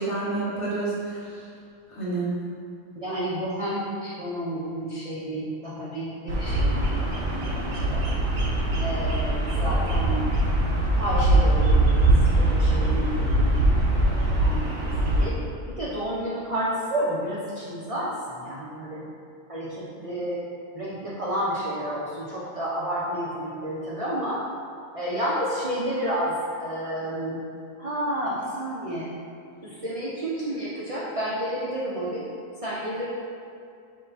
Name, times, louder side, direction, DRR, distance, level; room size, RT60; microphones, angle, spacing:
voice 1, 0.0-1.4 1.9-2.3, right 3 dB, 30° left, -9 dB, 0.9 m, -29 dB
voice 2, 3.0-8.0 8.8-10.3 11.0-13.7 14.0-15.4 15.7-19.1 19.5-20.4 20.7-24.4 24.9-26.3 26.6-27.4 27.8-29.1 29.6-32.3 32.6-33.1, equal, 50° right, -8 dB, 0.4 m, -30 dB
Bird vocalization bird call bird song, 6.3-15.3, right 1 dB, 80° right, 1.1 m, -22 dB
5.3 x 2.2 x 4.0 m, 2.4 s
omnidirectional pair, 1.4 m